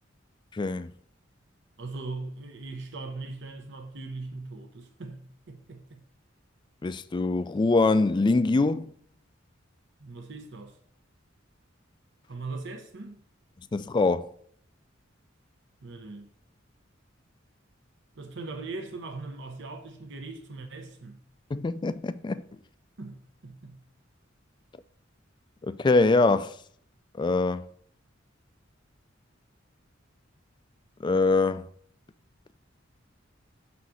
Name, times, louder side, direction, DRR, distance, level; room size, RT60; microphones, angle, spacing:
voice 1, 0.5-0.9 6.8-8.9 13.7-14.3 21.5-22.4 25.7-26.5 27.2-27.6 31.0-31.7, left 3 dB, 25° left, 0.3 m, -23 dB
voice 2, 1.8-6.0 10.0-10.8 12.3-13.2 15.8-16.3 18.2-21.2 23.0-23.8, right 3 dB, 65° right, 0.8 m, -40 dB
5.7 x 4.1 x 6.1 m
head